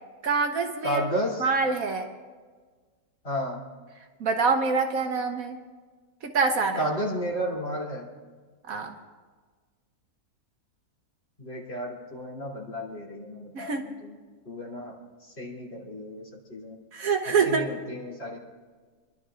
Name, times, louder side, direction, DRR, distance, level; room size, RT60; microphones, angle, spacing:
voice 1, 0.2-1.0 1.4-2.1 4.2-5.6 6.2-6.8 8.7-8.9 13.5-13.9 16.9-17.6, right 4 dB, 65° right, 5 dB, 1.2 m, -25 dB
voice 2, 0.8-1.5 3.2-3.6 6.8-8.1 11.4-14.2 14.4-15.0 15.4-16.8 17.2-18.4, equal, 40° left, -5 dB, 3.3 m, -32 dB
29.0 x 12.0 x 2.5 m, 1.4 s
omnidirectional pair, 1.7 m